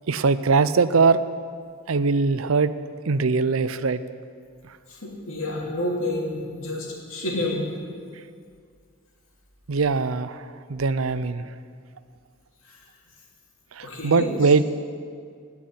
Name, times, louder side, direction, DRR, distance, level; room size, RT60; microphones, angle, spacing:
voice 1, 0.1-1.2 1.9-2.7 3.1-4.0 9.7-11.5 13.7-14.6, right 4 dB, 75° right, 13 dB, 0.6 m, -21 dB
voice 2, 4.9-7.7 12.7-12.8 13.8-14.3, left 1 dB, 75° left, -2 dB, 3.0 m, -29 dB
17.0 x 6.0 x 9.6 m, 2.2 s
head